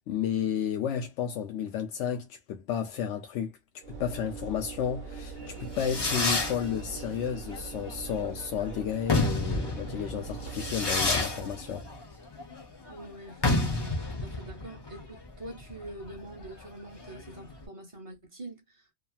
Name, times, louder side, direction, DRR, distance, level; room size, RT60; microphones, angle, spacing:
voice 1, 0.1-3.5 3.9-11.9, left 8 dB, 85° left, 0.9 m, -32 dB
Train / Engine / Alarm, 3.8-12.1, right 4 dB, 55° right, 1.0 m, -42 dB
Fireworks, 5.4-17.6, left 2 dB, 30° left, 0.5 m, -31 dB
voice 2, 12.9-18.9, right 1 dB, 30° right, 0.8 m, -44 dB
2.9 x 2.4 x 2.3 m
omnidirectional pair, 1.2 m